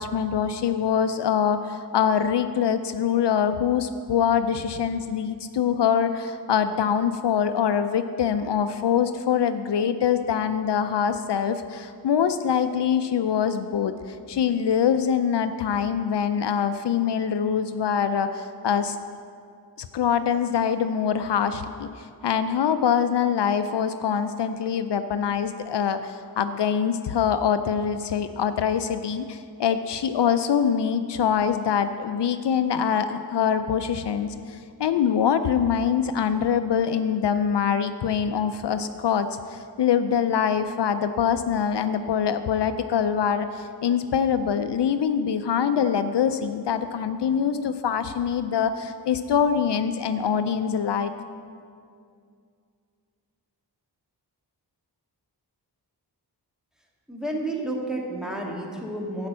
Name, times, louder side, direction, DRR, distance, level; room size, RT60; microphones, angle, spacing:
voice 1, 0.0-19.0 19.8-51.1, left 7 dB, 75° left, 10 dB, 0.5 m, -24 dB
voice 2, 57.1-59.3, right 1 dB, ahead, -2 dB, 1.7 m, -30 dB
10.5 x 5.2 x 7.4 m, 2.3 s
wide cardioid pair, 65°, 42 cm